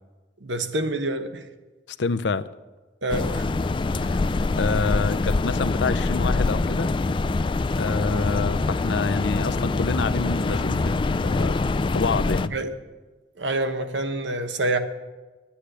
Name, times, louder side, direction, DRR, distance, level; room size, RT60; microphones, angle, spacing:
voice 1, 0.4-1.5 3.0-3.5 12.5-12.7 13.4-14.8, right 2 dB, 90° right, 8 dB, 1.1 m, -27 dB
voice 2, 2.0-2.5 4.0-4.2 4.6-6.9 7.8-12.5, left 4 dB, 80° left, 13 dB, 0.6 m, -27 dB
sound 1, 3.1-12.5, left 3 dB, 30° left, 0.3 m, -24 dB
11.5 x 8.6 x 8.1 m, 1.3 s
head